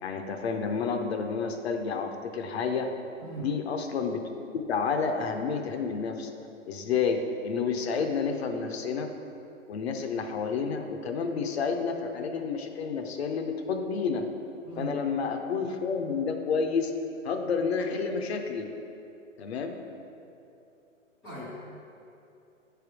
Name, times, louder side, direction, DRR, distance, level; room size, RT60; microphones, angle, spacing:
voice 1, 0.0-2.9 3.3-4.2 4.5-6.3 6.7-9.1 9.7-14.2 14.8-16.9 17.2-18.7 19.4-19.8, left 5 dB, 55° left, 5 dB, 0.7 m, -30 dB
voice 2, 3.2-3.5 14.6-15.0 21.2-21.8, right 2 dB, ahead, -17 dB, 0.4 m, -39 dB
8.0 x 3.5 x 4.7 m, 2.8 s
hypercardioid pair, 145°, 39 cm